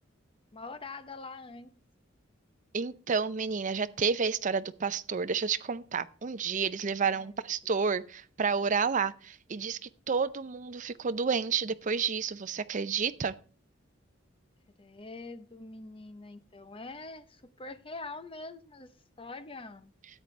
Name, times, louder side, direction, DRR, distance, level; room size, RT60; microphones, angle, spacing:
voice 1, 0.5-1.7 7.1-7.7 14.8-19.9, left 3 dB, 30° left, 0.7 m, -44 dB
voice 2, 2.7-13.3, right 5 dB, 40° right, 0.5 m, -30 dB
13.0 x 8.6 x 3.2 m
head